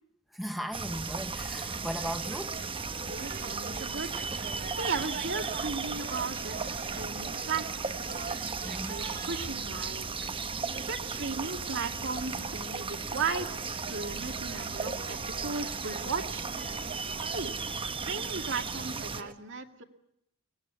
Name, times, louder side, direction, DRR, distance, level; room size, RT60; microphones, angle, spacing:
voice 1, 0.3-2.6 8.4-9.1 15.4-15.5, equal, ahead, 1.0 m, -37 dB
sound 1, 0.7-19.2, right 4 dB, 25° right, 1.1 m, -36 dB
sound 2, 1.3-19.3, right 5 dB, 40° right, 1.4 m, -44 dB
voice 2, 3.0-4.1 4.4-8.2 8.8-10.1 10.8-13.6 13.9-16.5 17.3-17.5 17.9-19.8, right 4 dB, 60° right, 2.1 m, -36 dB
23.5 x 19.5 x 9.7 m
head